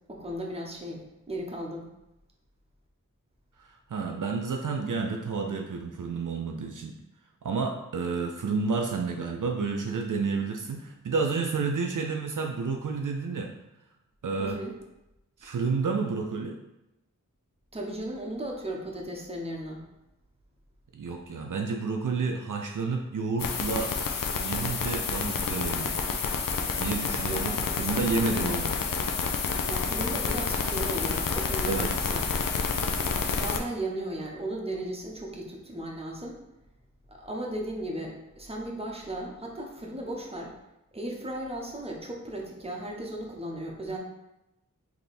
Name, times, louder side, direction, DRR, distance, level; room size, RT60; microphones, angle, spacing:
voice 1, 0.1-1.9 14.4-14.7 17.7-19.8 27.2-28.1 28.4-28.6 29.7-32.3 33.3-36.4 37.1-40.6 40.9-44.0, right 1 dB, 20° right, -1 dB, 0.8 m, -36 dB
voice 2, 3.6-6.9 7.4-13.5 14.2-14.6 15.4-16.6 20.9-23.9 24.4-26.0 26.7-28.7 31.7-31.9, right 4 dB, 70° right, 2 dB, 0.5 m, -30 dB
sound 1, 23.4-33.6, left 5 dB, 80° left, 0.5 m, -29 dB
3.3 x 2.9 x 4.1 m, 0.92 s
wide cardioid pair, 60°, 33 cm